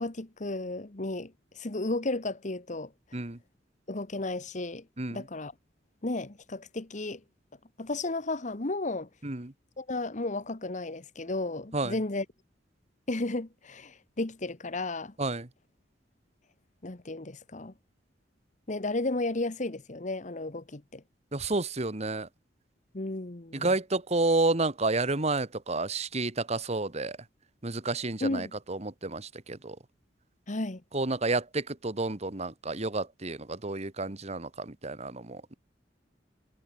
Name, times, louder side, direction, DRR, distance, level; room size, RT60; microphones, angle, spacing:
voice 1, 0.0-2.9 3.9-4.8 5.1-5.5 6.0-7.2 7.8-9.1 9.8-12.2 13.1-15.1 16.8-17.7 18.7-21.0 22.9-23.7 28.2-28.5 30.5-30.8, left 2 dB, 45° left, 1.3 m, -33 dB
voice 2, 9.2-9.5 11.7-12.0 15.2-15.5 21.3-22.3 23.5-27.2 27.6-29.8 30.9-35.5, right 2 dB, 40° right, 1.7 m, -30 dB
head